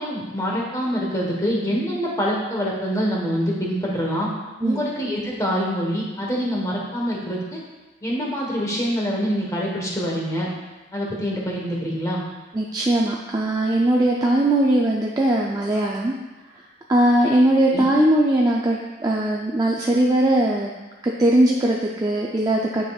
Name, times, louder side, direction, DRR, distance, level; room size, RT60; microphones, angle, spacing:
voice 1, 0.0-4.3 4.6-7.6 8.0-10.5 10.9-12.2 17.7-17.9, equal, 15° left, -2 dB, 1.2 m, -25 dB
voice 2, 12.5-16.2 16.9-20.7 21.0-22.9, right 1 dB, 20° right, -2 dB, 0.4 m, -20 dB
9.2 x 5.2 x 2.4 m, 1.2 s
head